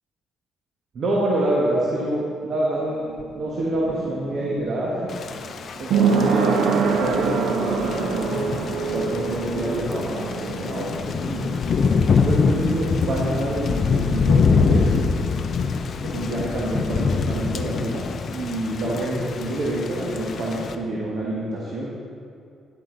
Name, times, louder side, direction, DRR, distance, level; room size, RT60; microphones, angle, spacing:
voice 1, 0.9-5.1 5.8-8.4 8.8-11.6 12.2-15.0 16.0-21.9, right 1 dB, 55° right, -4 dB, 1.5 m, -27 dB
sound 1, 2.8-14.3 14.6-14.7, right 5 dB, 85° right, 0.8 m, -26 dB
Thunder / Rain, 5.1-20.8, left 5 dB, 55° left, 0.6 m, -24 dB
11.0 x 8.1 x 4.0 m, 2.4 s
cardioid pair, 90°, 0 cm